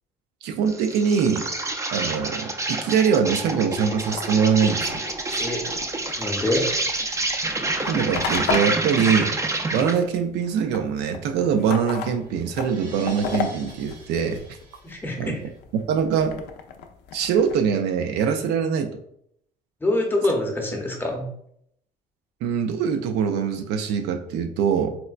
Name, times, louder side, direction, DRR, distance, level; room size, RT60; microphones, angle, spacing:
voice 1, 0.4-1.5 1.9-5.0 5.3-5.4 7.9-9.3 9.7-14.4 15.2-15.4 15.9-16.4 17.1-18.9 22.4-25.0, right 7 dB, 85° right, 6 dB, 0.4 m, -23 dB
Insect, 0.7-10.0, right 2 dB, 20° right, 0.4 m, -28 dB
sound 1, 3.5-10.1 10.3-14.9 15.4-17.6, left 6 dB, 80° left, 0.4 m, -35 dB
voice 2, 6.2-6.7 14.8-15.4 19.8-21.3, left 1 dB, 10° left, 1 dB, 0.7 m, -25 dB
sound 2, 11.0-15.6, right 3 dB, 50° right, 0.7 m, -47 dB
4.2 x 2.1 x 2.4 m, 0.71 s
cardioid pair, 110°, 17 cm